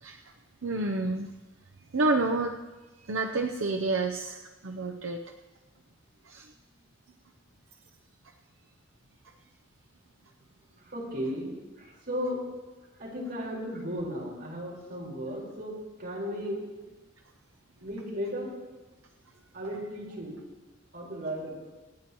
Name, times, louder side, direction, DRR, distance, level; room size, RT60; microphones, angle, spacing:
voice 1, 0.6-1.3 1.9-2.6 3.0-5.2 6.2-6.5, right 3 dB, 80° right, 3 dB, 0.7 m, -29 dB
voice 2, 10.7-12.4 13.0-16.6 16.9-17.0 17.8-18.6 19.3-20.4 20.9-21.6, equal, 55° right, -4 dB, 4.8 m, -35 dB
26.5 x 9.7 x 3.1 m, 1.2 s
head